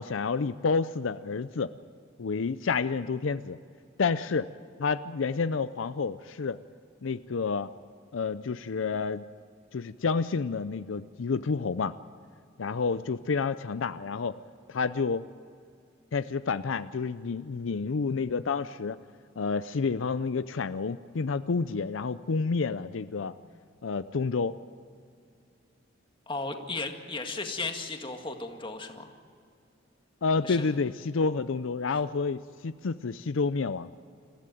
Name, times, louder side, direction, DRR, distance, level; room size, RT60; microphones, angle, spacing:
voice 1, 0.0-1.7 2.2-3.6 4.0-4.5 4.8-6.6 7.0-7.7 8.1-9.3 9.7-11.9 12.6-14.4 14.7-15.3 16.1-19.0 19.4-23.3 23.8-24.6 30.2-33.9, left 4 dB, 80° left, 13 dB, 0.5 m, -29 dB
voice 2, 26.3-29.1 30.4-30.7, left 3 dB, 25° left, 4 dB, 2.0 m, -35 dB
27.0 x 15.0 x 9.2 m, 2.3 s
head